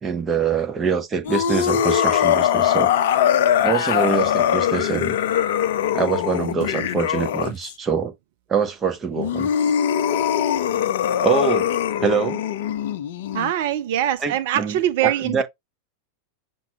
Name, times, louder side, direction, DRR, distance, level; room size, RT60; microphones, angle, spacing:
voice 1, 0.0-2.9 3.6-5.2 5.9-8.1 8.5-9.5 11.2-11.7 12.0-12.4 14.2-15.4, right 6 dB, 20° right, 1.0 m, -24 dB
sound 1, 1.2-7.7 9.1-13.5, left 10 dB, 55° left, 0.4 m, -21 dB
voice 2, 13.3-15.4, right 11 dB, 50° right, 0.4 m, -23 dB
5.9 x 2.2 x 4.0 m
figure-of-eight pair, 90°, 0 cm